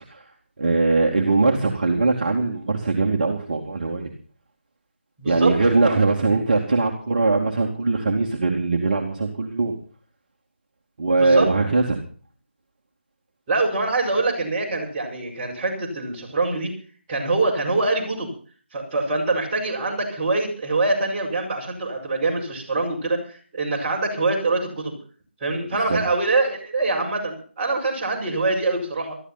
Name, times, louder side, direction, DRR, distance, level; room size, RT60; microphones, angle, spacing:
voice 1, 0.6-4.1 5.2-9.7 11.0-12.0 25.9-26.0, right 3 dB, 40° right, 0 dB, 2.5 m, -21 dB
voice 2, 5.2-6.0 11.2-11.5 13.5-16.7 17.1-18.3 18.7-24.9 25.4-29.2, right 3 dB, 20° right, -4 dB, 5.9 m, -24 dB
19.5 x 14.0 x 4.2 m, 0.40 s
figure-of-eight pair, 155°, 6 cm